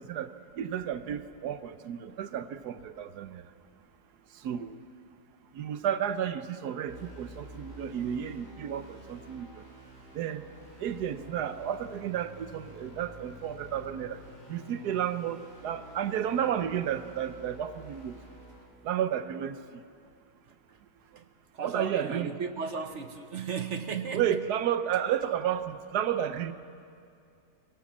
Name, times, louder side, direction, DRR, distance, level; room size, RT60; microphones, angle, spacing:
voice 1, 0.0-3.4 4.3-4.8 5.5-9.6 10.1-10.4 10.8-14.2 14.5-18.2 18.8-19.6 21.6-22.3 23.9-26.5, right 9 dB, 75° right, 11 dB, 1.3 m, -32 dB
sound 1, 6.9-18.6, left 1 dB, 35° right, 6.9 m, -50 dB
voice 2, 20.5-20.8 21.1-21.3 21.5-24.4, right 5 dB, 55° right, 8 dB, 1.0 m, -36 dB
22.5 x 17.5 x 7.4 m, 2.4 s
omnidirectional pair, 1.7 m